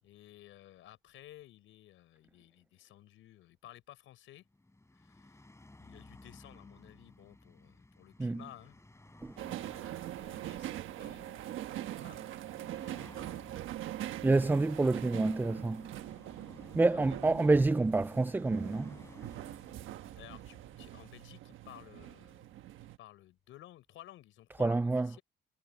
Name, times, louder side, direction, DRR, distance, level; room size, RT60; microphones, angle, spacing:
voice 1, 0.0-4.5 4.9-5.5 5.8-8.8 9.3-13.6 16.7-17.2 20.2-25.2, left 14 dB, 85° left, 5.2 m, -56 dB
sound 1, 4.4-21.2, left 2 dB, 15° left, 5.3 m, -58 dB
voice 2, 9.2-10.0 14.2-15.9 16.7-19.0 24.6-25.1, right 3 dB, 10° right, 0.3 m, -28 dB
sound 2, 9.4-23.0, right 13 dB, 85° right, 1.3 m, -43 dB
cardioid pair, 90°, 20 cm